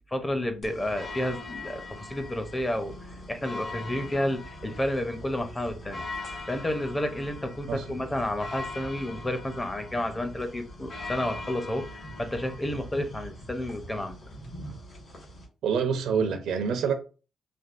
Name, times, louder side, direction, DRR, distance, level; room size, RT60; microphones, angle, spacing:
voice 1, 0.1-2.9 3.3-6.0 6.5-11.9 12.2-14.2, left 1 dB, 15° left, 0.6 m, -31 dB
sound 1, 0.6-15.5, left 2 dB, 50° left, 1.4 m, -41 dB
voice 2, 15.6-16.9, right 6 dB, 80° right, 0.6 m, -26 dB
3.4 x 2.3 x 2.4 m
cardioid pair, 90°, 0 cm